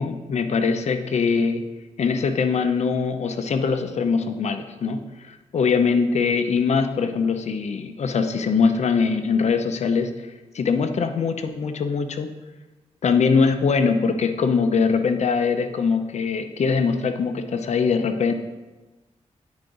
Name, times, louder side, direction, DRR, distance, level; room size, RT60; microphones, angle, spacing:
voice 1, 0.0-1.6 2.0-10.1 10.5-12.3 13.0-18.3, left 5 dB, 65° left, 8 dB, 0.7 m, -22 dB
9.5 x 4.8 x 3.9 m, 1.2 s
cardioid pair, 70°, 12 cm